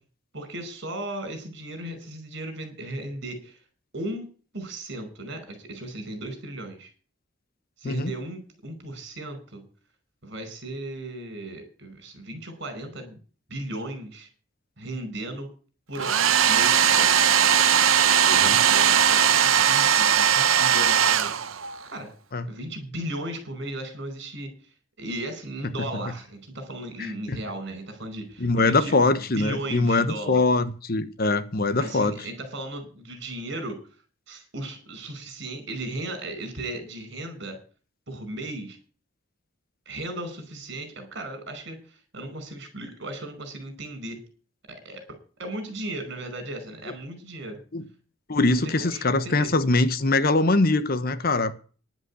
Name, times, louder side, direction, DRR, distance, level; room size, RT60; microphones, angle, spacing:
voice 1, 0.3-3.6 3.9-6.9 7.8-9.6 10.2-13.2 13.5-14.3 14.8-15.5 15.9-17.2 18.3-21.4 21.8-22.1 22.5-24.5 25.0-30.4 31.8-33.8 34.3-37.6 38.1-38.8 39.8-44.2 44.7-45.0 45.4-47.6 48.5-49.5, right 1 dB, 60° right, 5.0 m, -36 dB
Domestic sounds home sounds, 16.0-21.8, right 8 dB, 90° right, 0.9 m, -19 dB
voice 2, 18.3-18.6 22.3-22.5 27.3-27.4 28.4-32.2 47.7-47.8 48.3-51.5, left 3 dB, 50° left, 1.1 m, -22 dB
11.0 x 8.1 x 8.3 m
head